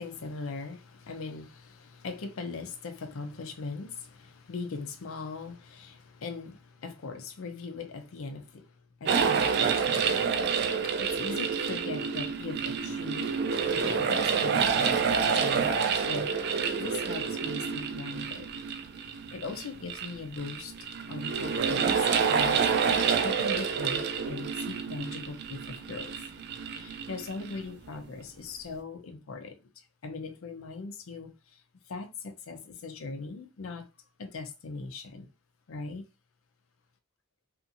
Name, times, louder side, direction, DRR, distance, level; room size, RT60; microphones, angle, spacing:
voice 1, 0.0-8.7 9.0-10.2 10.8-13.3 13.6-16.3 16.8-18.5 19.3-20.7 21.1-22.6 23.2-26.2 26.7-29.6 30.0-31.6 31.9-33.9 34.2-35.3 35.7-36.0, left 4 dB, 85° left, 0.5 m, -40 dB
sound 1, 9.1-27.7, right 6 dB, 50° right, 0.3 m, -28 dB
2.6 x 2.5 x 2.5 m
head